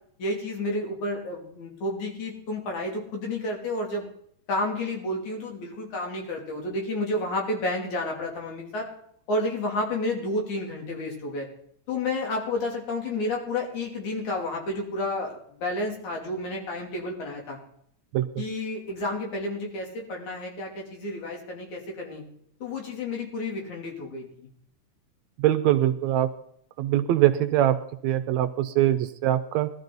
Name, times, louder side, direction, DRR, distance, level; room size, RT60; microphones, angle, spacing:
voice 1, 0.2-4.1 4.5-8.9 9.3-11.5 11.9-17.6 18.4-22.2 22.6-24.5, left 2 dB, 70° left, 0 dB, 4.3 m, -31 dB
voice 2, 25.4-26.3 26.8-29.7, right 12 dB, 75° right, 11 dB, 1.8 m, -23 dB
19.0 x 12.5 x 4.0 m, 0.66 s
omnidirectional pair, 3.5 m